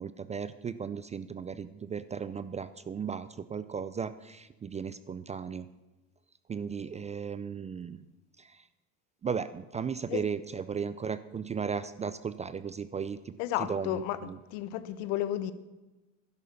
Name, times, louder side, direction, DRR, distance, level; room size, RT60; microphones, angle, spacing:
voice 1, 0.0-5.7 6.5-8.1 8.4-8.6 9.2-14.4, right 6 dB, 20° right, 14 dB, 0.4 m, -36 dB
voice 2, 13.4-14.2 14.5-15.5, left 13 dB, 65° left, 14 dB, 1.1 m, -32 dB
11.0 x 11.0 x 7.0 m, 1.1 s
supercardioid pair, 95°, 40 cm